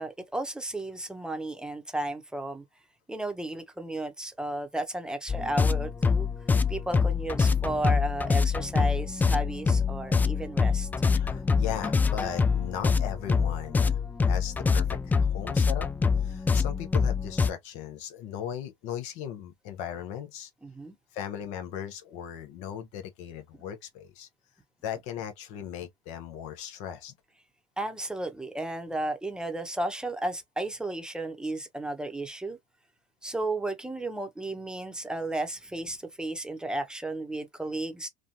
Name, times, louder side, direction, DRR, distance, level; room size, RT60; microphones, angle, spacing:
voice 1, 0.0-2.6 3.1-6.3 6.7-10.9 20.6-21.0 27.8-32.6 33.2-38.1, right 2 dB, 5° right, 0.8 m, -33 dB
sound 1, 5.3-17.5, left 5 dB, 10° left, 0.3 m, -25 dB
voice 2, 11.2-14.0 14.2-15.9 16.2-20.5 21.1-24.3 24.8-27.1, left 9 dB, 60° left, 0.7 m, -38 dB
3.1 x 2.2 x 2.6 m
hypercardioid pair, 85°, 14 cm